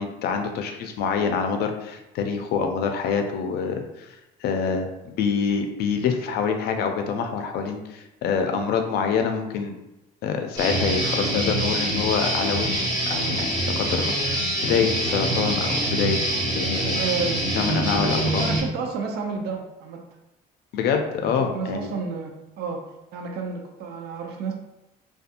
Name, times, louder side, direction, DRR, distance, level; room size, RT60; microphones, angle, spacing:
voice 1, 0.0-4.1 4.4-4.9 5.2-9.7 10.2-16.2 16.6-17.0 17.5-18.5 20.7-21.9, left 6 dB, 75° left, 5 dB, 0.4 m, -26 dB
Guitar, 10.6-18.6, right 1 dB, 25° right, 0.9 m, -25 dB
voice 2, 16.9-17.4 18.4-20.0 21.1-24.5, right 5 dB, 70° right, 2 dB, 0.4 m, -31 dB
2.6 x 2.3 x 2.5 m, 0.93 s
cardioid pair, 110°, 17 cm